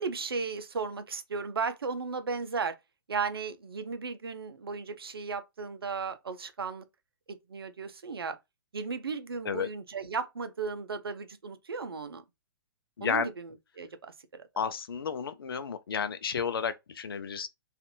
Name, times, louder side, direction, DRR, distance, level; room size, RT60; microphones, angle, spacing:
voice 1, 0.0-2.7 3.1-6.8 7.3-8.4 8.7-12.2 13.0-13.5 13.8-14.4, right 5 dB, 90° right, 0.6 m, -35 dB
voice 2, 13.0-13.3 14.6-17.5, left 6 dB, 80° left, 0.5 m, -32 dB
2.6 x 2.5 x 2.7 m
hypercardioid pair, 130°, 12 cm